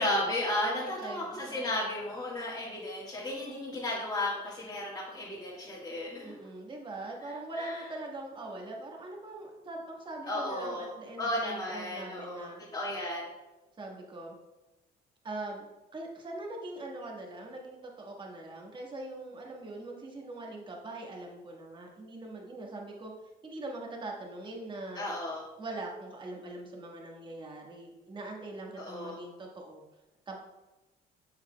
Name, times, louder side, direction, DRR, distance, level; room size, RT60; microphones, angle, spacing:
voice 1, 0.0-6.3 7.2-7.8 10.3-10.9 11.2-13.3 24.9-25.4 28.7-29.2, left 1 dB, 25° left, -7 dB, 1.5 m, -34 dB
voice 2, 0.6-1.7 6.2-12.6 13.8-14.3 15.2-15.7 15.9-23.1 23.4-25.1 25.6-29.8 30.3-30.4, right 2 dB, 30° right, 0 dB, 1.4 m, -42 dB
7.2 x 6.1 x 2.2 m, 1.1 s
cardioid pair, 110°, 17 cm